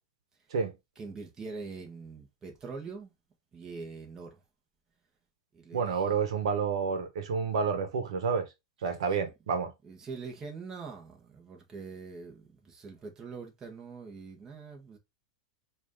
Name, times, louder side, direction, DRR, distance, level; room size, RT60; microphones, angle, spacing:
voice 1, 1.0-3.1 3.5-4.4 5.5-6.0 9.8-15.0, right 4 dB, 20° right, 1.4 m, -43 dB
voice 2, 5.7-8.5 8.8-9.7, right 5 dB, 85° right, 1.1 m, -29 dB
4.8 x 2.7 x 3.6 m
supercardioid pair, 135°, 3 cm